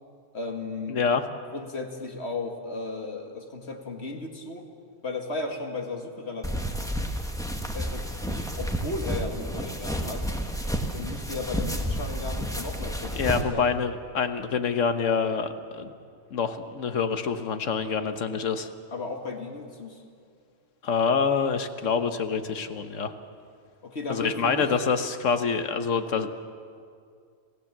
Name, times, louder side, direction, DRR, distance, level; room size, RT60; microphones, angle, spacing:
voice 1, 0.3-1.0 1.5-4.7 5.0-6.7 7.7-10.3 10.9-13.7 18.9-20.0 23.8-24.7, left 3 dB, 60° left, 3 dB, 2.2 m, -35 dB
voice 2, 0.9-1.2 13.2-15.9 16.3-18.7 20.8-23.1 24.1-26.3, left 5 dB, 85° left, 9 dB, 1.5 m, -26 dB
sound 1, 6.4-13.4, equal, 5° left, 1.4 m, -31 dB
27.0 x 16.0 x 7.4 m, 2.3 s
omnidirectional pair, 1.3 m